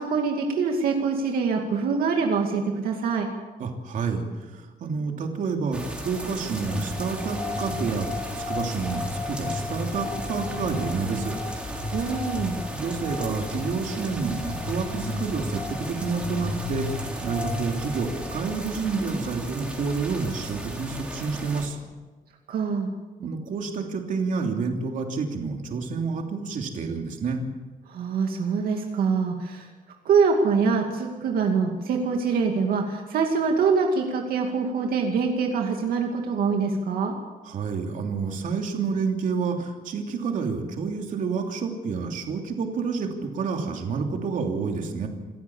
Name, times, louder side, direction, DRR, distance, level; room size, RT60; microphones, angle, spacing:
voice 1, 0.0-3.3 11.9-12.6 22.5-22.9 27.9-29.7 30.0-37.2, right 5 dB, 80° right, 2 dB, 2.4 m, -24 dB
voice 2, 3.6-11.4 12.7-21.8 23.2-27.4 37.4-45.1, right 5 dB, 60° right, 2 dB, 3.0 m, -29 dB
sound 1, 5.7-21.7, right 1 dB, 5° right, 3.6 m, -37 dB
sound 2, 6.7-18.5, left 3 dB, 30° left, 2.2 m, -34 dB
27.5 x 14.5 x 7.3 m, 1.3 s
cardioid pair, 165°, 15 cm